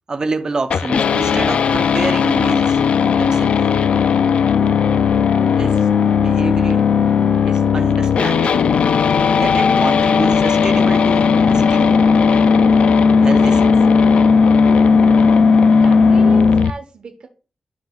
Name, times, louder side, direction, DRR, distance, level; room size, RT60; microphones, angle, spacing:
voice 1, 0.1-2.8 3.2-3.7 5.5-5.9 6.2-6.9 7.4-8.7 9.4-11.9 13.2-13.9, right 3 dB, 35° right, 0.8 m, -27 dB
sound 1, 0.7-16.7, left 5 dB, 80° left, 0.3 m, -15 dB
voice 2, 15.8-17.3, right 4 dB, 60° right, 1.0 m, -33 dB
12.0 x 4.8 x 2.4 m
wide cardioid pair, 140°, 2 cm